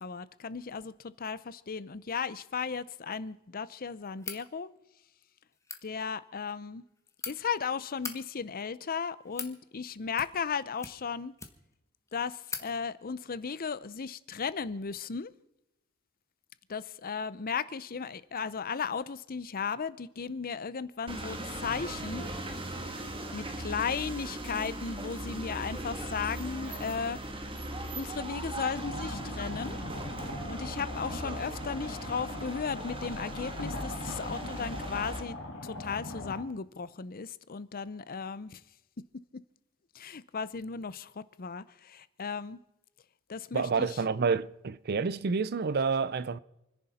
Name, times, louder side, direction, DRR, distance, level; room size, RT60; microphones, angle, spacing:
voice 1, 0.0-4.7 5.8-6.8 7.3-11.3 12.1-15.3 16.7-22.3 23.3-27.2 27.9-29.8 30.5-35.4 35.6-38.6 39.3-39.4 39.9-42.6 43.3-44.0, left 6 dB, 40° left, 0.6 m, -36 dB
sound 1, 4.2-4.4 5.5-5.8 6.8-7.3 7.9-8.2 9.0-9.6 10.1-10.5 10.8-11.8 12.1-12.2 12.5-12.7, left 4 dB, 15° left, 1.2 m, -40 dB
sound 2, 21.1-35.2, right 1 dB, 25° right, 1.5 m, -39 dB
sound 3, 28.7-36.4, left 2 dB, 60° left, 1.9 m, -40 dB
voice 2, 43.5-46.4, right 5 dB, 45° right, 0.5 m, -29 dB
28.0 x 10.5 x 4.2 m
head